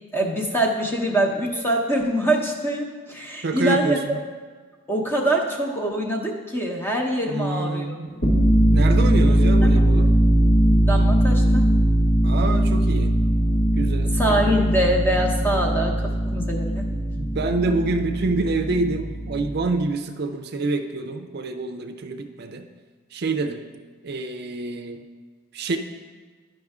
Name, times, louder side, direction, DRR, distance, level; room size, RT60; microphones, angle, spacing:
voice 1, 0.1-4.2 4.9-7.9 9.4-9.8 10.8-11.7 14.1-16.0 16.3-16.9, right 1 dB, 10° left, 0 dB, 0.9 m, -24 dB
voice 2, 3.4-4.2 7.3-8.1 8.7-10.1 12.2-13.1 13.8-14.1 16.9-22.7 23.1-23.6 24.0-25.0 25.5-25.8, right 3 dB, 55° right, 5 dB, 0.5 m, -26 dB
sound 1, 8.1-19.6, equal, 70° left, 1.8 m, -20 dB
11.5 x 5.4 x 3.6 m, 1.5 s
head